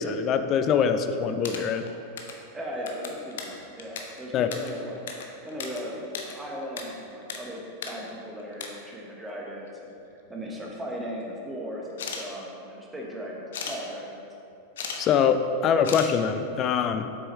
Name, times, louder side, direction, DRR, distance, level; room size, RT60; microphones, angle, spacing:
voice 1, 0.0-1.8 4.3-4.5 15.0-17.1, left 7 dB, 35° left, 9 dB, 0.4 m, -24 dB
sound 1, 1.2-2.4 2.7-5.8 6.0-6.8 7.1-7.4 7.7-7.9 8.3-8.7 9.7-9.8 10.1-10.8 11.9-12.2 13.5-13.8 14.5-15.0 15.3-15.4 15.8-16.1, left 6 dB, 60° left, 0.7 m, -36 dB
voice 2, 2.5-5.0 5.4-14.2, equal, 10° right, -2 dB, 1.3 m, -37 dB
7.8 x 6.2 x 3.2 m, 2.6 s
figure-of-eight pair, 90°, 0 cm